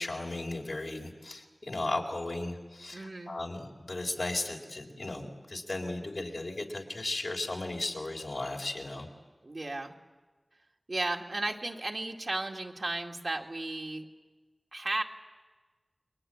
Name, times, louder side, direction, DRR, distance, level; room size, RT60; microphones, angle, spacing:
voice 1, 0.0-9.1, left 2 dB, 75° left, 1 dB, 4.0 m, -36 dB
voice 2, 2.9-3.4 9.4-9.9 10.9-14.1 14.7-15.0, right 2 dB, 70° right, 1 dB, 2.3 m, -34 dB
30.0 x 22.5 x 8.9 m, 1.3 s
wide cardioid pair, 45°, 0 cm